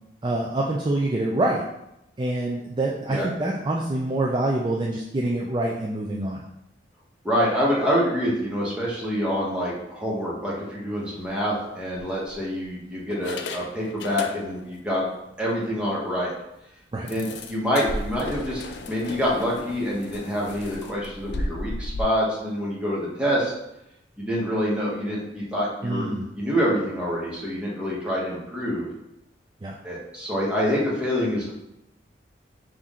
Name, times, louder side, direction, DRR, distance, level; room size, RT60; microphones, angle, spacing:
voice 1, 0.2-1.6 2.2-6.4 16.9-17.1 25.8-26.2 29.6-29.8, right 2 dB, 25° right, -2 dB, 0.4 m, -26 dB
voice 2, 7.2-15.1 15.4-16.3 17.1-18.6 18.9-23.5 24.2-26.1 26.4-28.9 29.8-31.5, equal, 5° right, -6 dB, 1.1 m, -26 dB
sound 1, 11.1-11.3 12.0-12.6 13.1-14.8 15.1-15.2 15.6-15.7 16.1-16.2 17.1-22.0, left 2 dB, 70° left, 0.4 m, -35 dB
5.7 x 2.6 x 3.6 m, 0.86 s
head